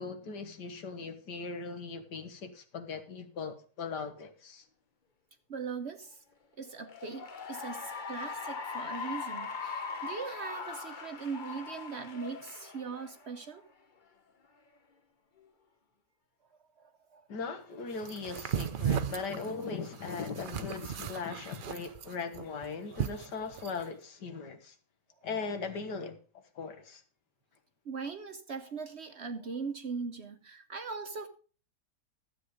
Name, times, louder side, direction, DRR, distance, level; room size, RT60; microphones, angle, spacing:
voice 1, 0.0-4.6 17.3-24.7 25.2-26.2 26.6-27.0, left 4 dB, 85° left, 2.0 m, -39 dB
voice 2, 5.5-6.2 6.6-13.7 16.8-17.3 27.8-31.3, right 5 dB, 50° right, 0.9 m, -40 dB
Cheering / Applause, 6.8-13.5, left 5 dB, 35° left, 0.8 m, -40 dB
sound 1, 18.0-23.8, right 8 dB, 85° right, 0.4 m, -36 dB
12.5 x 7.9 x 5.0 m
omnidirectional pair, 1.8 m